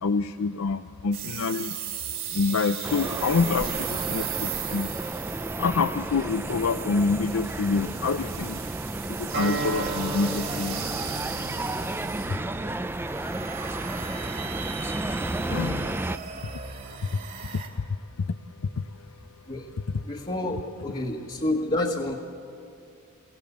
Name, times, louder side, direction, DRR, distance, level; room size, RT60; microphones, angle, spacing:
voice 1, 0.0-1.7 2.3-4.9 5.6-8.6 9.3-10.8 15.5-15.8 21.8-21.9, left 4 dB, 85° left, 11 dB, 0.5 m, -26 dB
sound 1, 1.1-17.7, right 8 dB, 45° right, 2.9 m, -37 dB
sound 2, 2.8-16.2, right 2 dB, 10° right, 0.4 m, -32 dB
Acoustic guitar, 9.3-14.5, right 2 dB, 60° right, 4.4 m, -36 dB
voice 2, 20.0-22.2, left 1 dB, 30° left, -2 dB, 1.4 m, -29 dB
23.5 x 17.0 x 8.6 m, 2.6 s
head